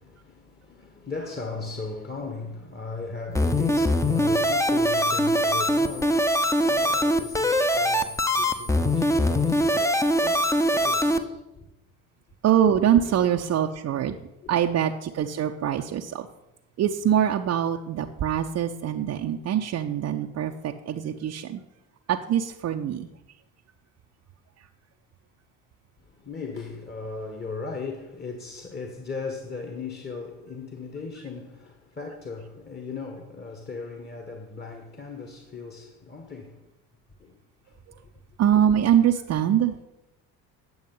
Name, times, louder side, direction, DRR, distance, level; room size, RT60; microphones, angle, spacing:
voice 1, 0.0-11.7 13.0-13.1 14.4-14.5 26.0-36.7 37.2-37.8 38.0-38.1, left 4 dB, 20° left, 1.3 m, -38 dB
sound 1, 3.3-11.2, left 1 dB, 5° left, 0.7 m, -22 dB
voice 2, 12.4-14.2 14.5-16.3 16.8-21.6 22.1-23.1 37.9-38.0 38.4-39.8, right 9 dB, 35° right, 0.6 m, -24 dB
9.3 x 7.1 x 5.5 m
hypercardioid pair, 60°, 44 cm